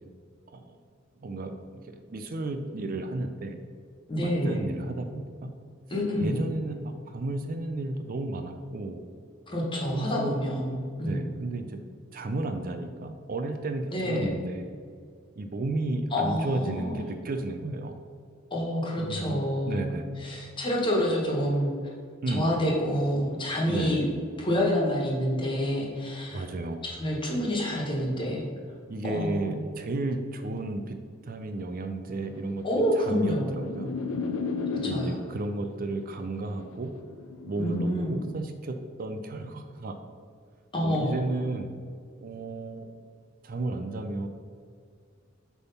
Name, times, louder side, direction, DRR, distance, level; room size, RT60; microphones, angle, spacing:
voice 1, 1.2-1.5 1.8-3.6 4.2-5.5 6.2-9.0 9.9-10.4 11.0-11.8 12.1-14.7 15.4-17.9 19.0-20.0 22.2-22.6 23.7-24.0 26.3-26.8 28.9-31.0 31.2-32.7 33.0-33.9 34.8-36.9 37.5-40.0 40.8-41.7 42.2-42.9 43.4-44.3, right 2 dB, 45° right, 6 dB, 0.5 m, -33 dB
voice 2, 4.1-4.7 5.9-6.4 9.5-11.2 13.9-14.3 16.1-17.0 18.5-21.7 22.3-24.0 24.4-26.4 26.8-28.5 29.0-29.6 32.6-33.6 34.8-35.2 37.6-38.2 40.7-41.2, equal, 25° left, -3 dB, 1.7 m, -28 dB
sound 1, 32.4-35.5 36.4-37.9, left 4 dB, 85° left, 0.5 m, -34 dB
8.2 x 3.5 x 5.6 m, 2.1 s
head